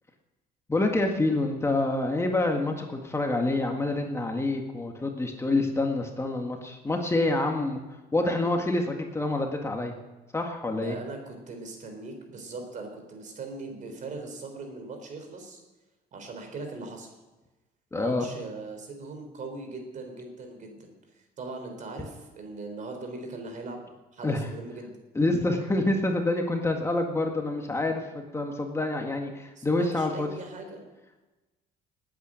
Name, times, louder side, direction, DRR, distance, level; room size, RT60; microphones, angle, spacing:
voice 1, 0.7-7.8 8.1-10.0 10.3-11.0 17.9-18.3 24.2-24.4 25.2-30.3, left 2 dB, 15° left, 3 dB, 1.8 m, -27 dB
voice 2, 10.7-15.6 16.1-17.1 17.9-20.9 21.4-23.8 24.1-24.9 29.6-30.9, right 3 dB, 50° right, 4 dB, 4.0 m, -40 dB
19.5 x 9.2 x 6.4 m, 1.2 s
cardioid pair, 110°, 17 cm